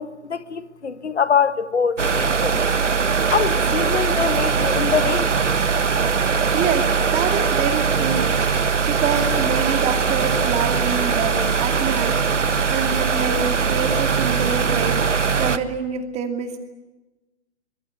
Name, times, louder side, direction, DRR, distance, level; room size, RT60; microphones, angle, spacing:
voice 1, 0.0-2.6 3.3-5.3, left 6 dB, 65° left, 1.7 m, -24 dB
sound 1, 2.0-15.6, right 5 dB, 75° right, 1.5 m, -21 dB
voice 2, 6.5-8.3 8.9-12.4 12.7-15.0 15.4-16.6, right 6 dB, 20° right, 2.5 m, -26 dB
25.0 x 22.5 x 9.6 m
figure-of-eight pair, 125°, 36 cm